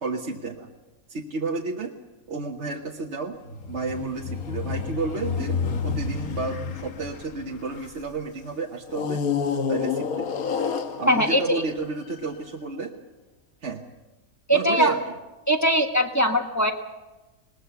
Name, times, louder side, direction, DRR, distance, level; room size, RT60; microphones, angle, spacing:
voice 1, 0.0-0.7 1.1-1.9 2.3-3.4 3.7-9.2 9.7-10.4 11.0-12.9 13.6-13.8 14.5-15.0, right 4 dB, 45° right, 0 dB, 1.4 m, -31 dB
sound 1, 3.5-8.1 8.9-12.3, left 6 dB, 65° left, 1.5 m, -29 dB
voice 2, 11.1-11.6 14.5-14.9 15.5-16.7, equal, 10° left, 3 dB, 1.3 m, -21 dB
20.0 x 20.0 x 7.0 m, 1.1 s
omnidirectional pair, 1.7 m